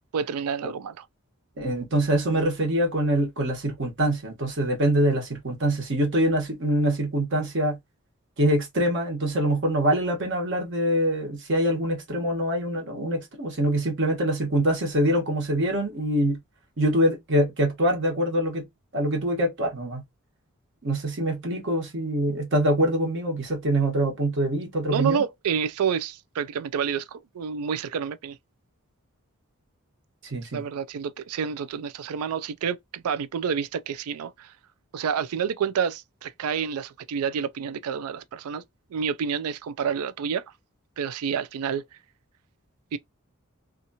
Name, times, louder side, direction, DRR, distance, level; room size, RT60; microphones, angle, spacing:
voice 1, 0.1-1.0 24.9-28.4 30.5-34.5 34.9-38.6 38.9-40.4 41.0-41.8 42.9-43.0, right 7 dB, 85° right, 0.4 m, -29 dB
voice 2, 1.6-7.8 8.4-16.4 16.8-18.7 18.9-20.0 20.8-25.2 30.2-30.6, right 1 dB, 55° right, 1.1 m, -24 dB
2.8 x 2.4 x 2.6 m
head